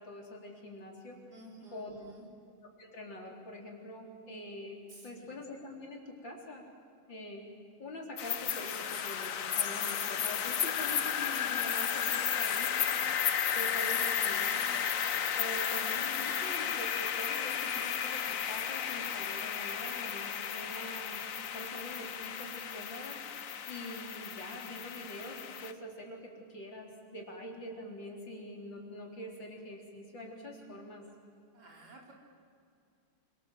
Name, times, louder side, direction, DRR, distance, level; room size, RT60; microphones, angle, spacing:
voice 1, 0.0-1.2 1.7-1.9 2.8-4.8 5.0-6.6 7.1-7.5 7.8-14.9 15.4-21.2 21.5-31.0, left 1 dB, 75° left, 1 dB, 4.7 m, -45 dB
voice 2, 1.3-2.3 4.9-5.3 31.5-32.1, right 1 dB, 60° right, 0 dB, 5.0 m, -53 dB
sound 1, 8.2-25.7, left 8 dB, 50° left, 1.2 m, -33 dB
28.0 x 25.0 x 7.6 m, 2.4 s
omnidirectional pair, 2.0 m